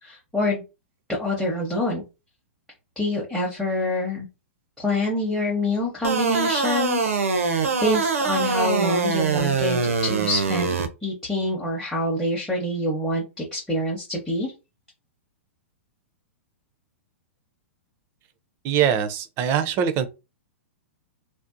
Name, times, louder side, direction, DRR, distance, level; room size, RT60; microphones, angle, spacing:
voice 1, 0.0-0.6 1.1-2.0 3.0-4.3 4.8-14.5, left 1 dB, 5° left, 0.7 m, -26 dB
sound 1, 6.0-10.9, right 4 dB, 85° right, 0.5 m, -23 dB
voice 2, 18.6-20.1, right 8 dB, 35° right, 0.4 m, -22 dB
2.6 x 2.0 x 2.5 m
hypercardioid pair, 120°, 7 cm